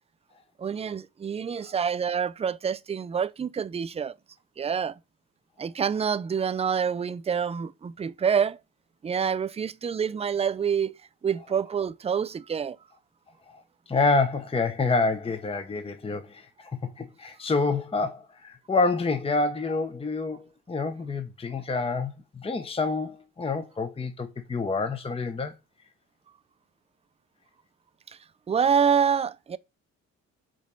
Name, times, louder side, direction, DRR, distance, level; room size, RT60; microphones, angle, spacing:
voice 1, 0.6-4.1 4.6-5.0 5.6-8.6 9.0-11.0 11.2-12.8 28.5-29.6, right 7 dB, 20° right, 0.4 m, -27 dB
voice 2, 13.9-16.7 17.0-25.5, left 3 dB, 20° left, 0.8 m, -27 dB
5.2 x 4.2 x 5.3 m
cardioid pair, 90°, 30 cm